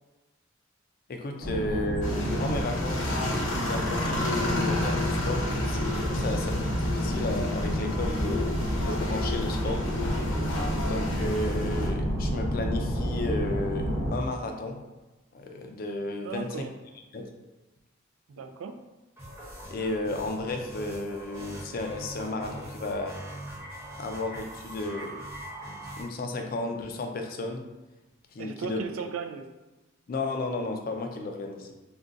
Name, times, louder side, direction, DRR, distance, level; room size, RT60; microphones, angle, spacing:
voice 1, 1.1-3.1 3.6-9.8 10.8-14.8 15.3-16.6 17.1-17.3 19.7-23.2 24.0-25.2 26.0-27.6 28.3-28.8 30.1-31.7, left 2 dB, 45° left, 3 dB, 0.3 m, -33 dB
sound 1, 1.4-14.1, equal, 40° right, 0.9 m, -30 dB
sound 2, 2.0-11.9, left 2 dB, 85° left, 0.7 m, -31 dB
voice 2, 16.2-16.7 18.3-18.8 28.4-29.5, right 5 dB, 85° right, 7 dB, 0.3 m, -36 dB
sound 3, 19.2-26.0, right 1 dB, 15° right, 0.8 m, -42 dB
2.5 x 2.3 x 3.7 m, 1.1 s
head